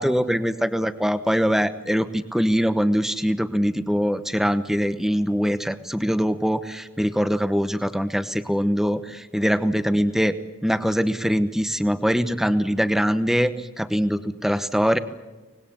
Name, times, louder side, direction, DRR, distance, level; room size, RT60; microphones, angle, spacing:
voice 1, 0.0-10.3 10.6-15.0, equal, ahead, 12 dB, 0.9 m, -23 dB
25.0 x 20.0 x 8.6 m, 1.2 s
head